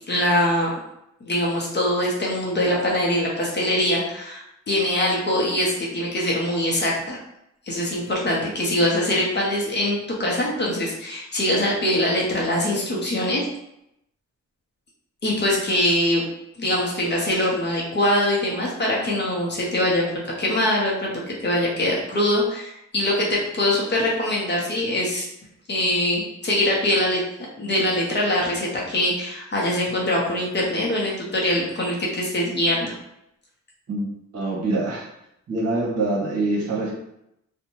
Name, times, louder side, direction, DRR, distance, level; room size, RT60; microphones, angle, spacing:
voice 1, 0.1-0.7 1.2-7.2 7.7-13.4 15.2-16.3 16.6-20.1 20.4-25.2 25.7-27.2 27.6-32.9, left 1 dB, 35° left, -4 dB, 0.6 m, -23 dB
voice 2, 34.3-35.1 35.5-36.9, right 2 dB, 55° right, -4 dB, 1.0 m, -24 dB
2.6 x 2.1 x 2.9 m, 0.80 s
wide cardioid pair, 155°, 30 cm